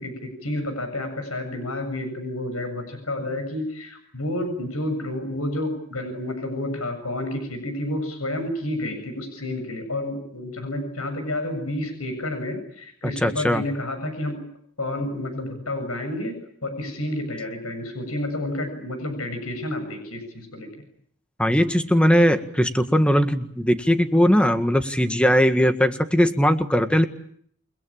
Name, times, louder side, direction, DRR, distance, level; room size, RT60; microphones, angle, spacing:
voice 1, 0.0-14.4 14.8-20.7, left 1 dB, 90° left, 7 dB, 7.5 m, -30 dB
voice 2, 13.2-13.6 21.4-27.1, equal, 5° left, 8 dB, 1.7 m, -19 dB
29.5 x 21.0 x 8.8 m, 0.65 s
head